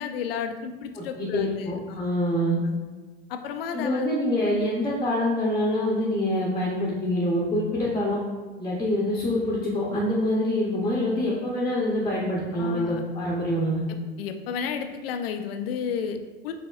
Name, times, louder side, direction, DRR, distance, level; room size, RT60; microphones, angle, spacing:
voice 1, 0.0-2.1 2.6-2.8 3.3-4.1 12.5-13.0 14.2-16.5, left 7 dB, 75° left, 6 dB, 0.5 m, -32 dB
voice 2, 1.0-2.6 3.7-8.2 8.6-13.8, left 1 dB, 15° left, -5 dB, 0.8 m, -25 dB
4.2 x 2.9 x 2.4 m, 1.3 s
hypercardioid pair, 80°, 30 cm